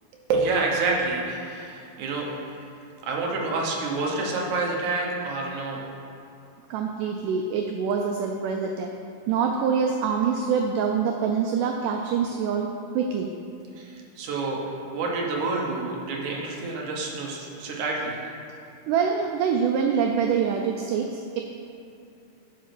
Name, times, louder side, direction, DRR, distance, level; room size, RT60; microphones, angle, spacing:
voice 1, 0.3-2.4 3.0-5.8 13.8-18.2, right 3 dB, 65° right, -1 dB, 2.1 m, -28 dB
voice 2, 6.7-8.9 9.3-12.7 13.0-13.3 18.9-21.4, right 6 dB, 85° right, 2 dB, 1.8 m, -25 dB
10.5 x 5.5 x 5.9 m, 2.6 s
omnidirectional pair, 4.3 m